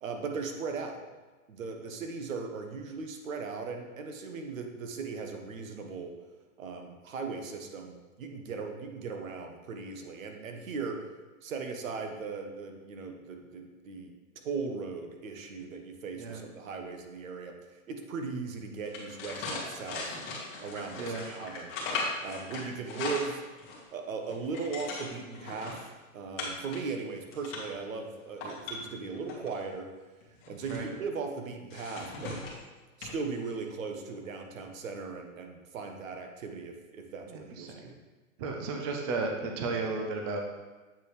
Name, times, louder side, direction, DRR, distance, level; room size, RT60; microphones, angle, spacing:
voice 1, 0.0-1.0 1.5-6.1 6.6-11.1 11.4-14.1 14.4-17.6 17.9-20.1 20.6-21.7 22.2-23.4 23.9-25.8 26.1-29.9 30.5-32.4 33.0-38.0, right 4 dB, 75° right, 4 dB, 1.2 m, -38 dB
sound 1, 18.8-23.9 24.2-25.8 26.4-26.8 27.2-27.8 28.3-29.5 30.2-30.9 31.7-32.6 33.0-33.2 33.5-33.7, left 3 dB, 30° left, 1.7 m, -38 dB
voice 2, 37.3-37.9 38.4-40.4, right 3 dB, 20° right, 2 dB, 0.3 m, -34 dB
8.1 x 4.3 x 3.3 m, 1.2 s
hypercardioid pair, 135°, 40 cm